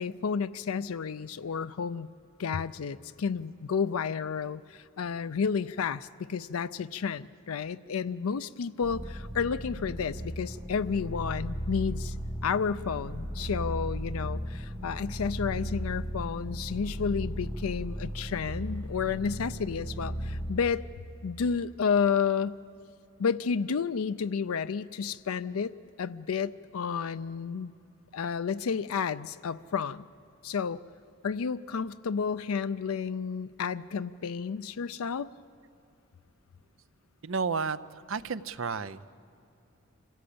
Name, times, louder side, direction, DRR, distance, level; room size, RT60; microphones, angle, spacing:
voice 1, 0.0-2.1 2.4-12.1 12.4-20.8 21.2-22.5 23.2-27.7 28.1-30.0 30.4-30.8 31.2-35.3, left 6 dB, 85° left, 12 dB, 0.5 m, -31 dB
sound 1, 8.8-20.5, equal, 15° right, 2.8 m, -36 dB
voice 2, 37.2-39.0, right 5 dB, 65° right, 14 dB, 0.7 m, -32 dB
26.5 x 16.5 x 8.6 m, 2.9 s
head